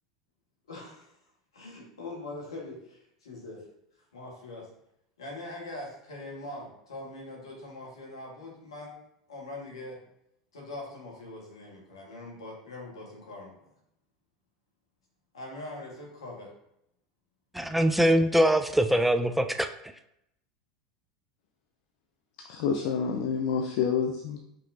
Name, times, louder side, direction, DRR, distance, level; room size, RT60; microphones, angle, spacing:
voice 1, 0.7-1.1 1.5-3.7 4.1-4.7 5.2-8.9 9.3-10.0 10.5-13.6 15.3-16.5, left 2 dB, 90° left, -2 dB, 1.7 m, -42 dB
voice 2, 17.5-19.7, right 1 dB, 5° right, 8 dB, 0.4 m, -23 dB
voice 3, 22.4-24.4, left 6 dB, 65° left, 3 dB, 0.5 m, -28 dB
5.3 x 3.6 x 2.8 m, 0.78 s
hypercardioid pair, 90°, 3 cm